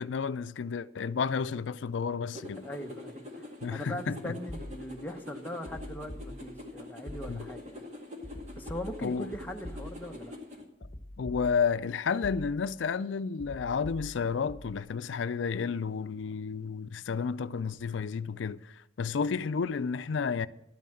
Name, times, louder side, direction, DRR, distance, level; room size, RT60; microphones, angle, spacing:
voice 1, 0.0-2.6 3.6-4.3 7.3-7.4 9.0-9.3 11.2-20.5, left 5 dB, 85° left, 0.4 m, -31 dB
sound 1, 2.4-10.6, left 2 dB, 40° right, 1.9 m, -45 dB
voice 2, 2.5-7.9 8.6-10.3, equal, 10° left, 0.8 m, -41 dB
sound 2, 4.5-5.1 5.6-6.7 7.1-7.7 8.2-10.3 10.8-11.9 12.2-12.8 13.4-14.8, left 1 dB, 30° left, 1.3 m, -45 dB
12.5 x 9.2 x 7.6 m
head